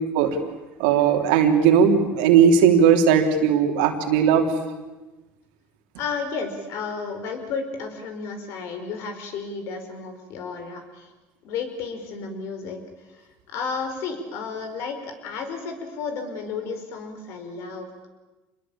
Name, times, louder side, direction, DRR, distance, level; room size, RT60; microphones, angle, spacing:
voice 1, 0.8-4.5, right 7 dB, 90° right, 4 dB, 3.3 m, -17 dB
voice 2, 6.0-11.1 11.4-12.8 13.5-18.1, left 5 dB, 70° left, 7 dB, 5.1 m, -32 dB
26.5 x 21.5 x 8.8 m, 1.1 s
supercardioid pair, 110°, 5 cm